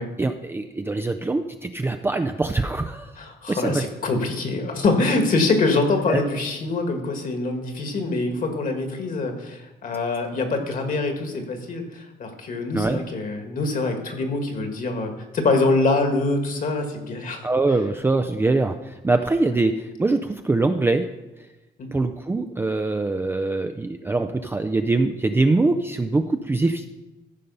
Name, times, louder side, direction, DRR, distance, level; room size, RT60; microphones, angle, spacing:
voice 1, 0.2-3.1 3.5-3.8 6.1-6.2 12.7-13.0 17.4-21.1 21.9-26.9, right 3 dB, 15° right, 7 dB, 0.4 m, -23 dB
voice 2, 3.2-17.4 21.8-21.9, left 3 dB, 50° left, 5 dB, 1.8 m, -24 dB
14.0 x 5.3 x 5.5 m, 1.1 s
cardioid pair, 125°, 17 cm